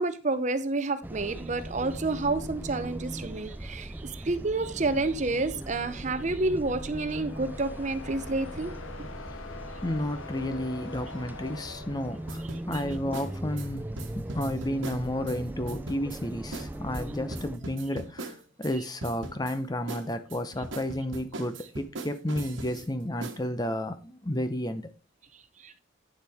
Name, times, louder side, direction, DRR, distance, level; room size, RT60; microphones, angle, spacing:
voice 1, 0.0-8.7 25.6-25.7, right 2 dB, 40° right, 0.7 m, -29 dB
sound 1, 1.0-17.6, right 1 dB, 10° right, 0.3 m, -39 dB
sound 2, 5.8-12.8, left 4 dB, 90° left, 1.0 m, -45 dB
voice 2, 9.8-13.9 14.1-24.9, left 1 dB, 20° left, 0.8 m, -32 dB
sound 3, 12.3-15.4 15.7-16.2 16.5-16.7 16.9-18.7 19.0-19.6 19.9-22.9 23.2-23.4, right 2 dB, 75° right, 1.3 m, -39 dB
9.7 x 7.3 x 3.5 m
head